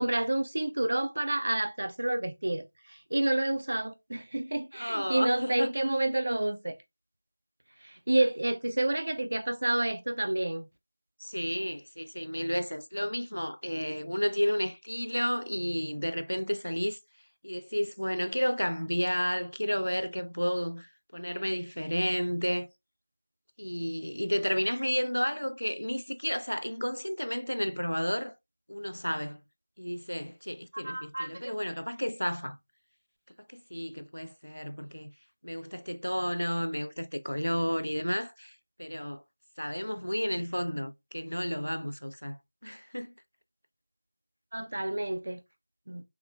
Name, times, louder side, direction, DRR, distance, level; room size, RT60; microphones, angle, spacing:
voice 1, 0.0-6.7 7.8-10.7 30.7-31.5 44.5-45.4 45.9-46.0, right 1 dB, 55° right, 0.3 m, -29 dB
voice 2, 4.7-5.7 11.2-17.0 17.4-22.7 23.6-28.4 28.7-29.4 29.8-32.6 33.5-35.1 35.4-39.2 39.6-43.1, equal, 80° left, 0.4 m, -32 dB
3.6 x 2.1 x 2.2 m
figure-of-eight pair, 170°, 0 cm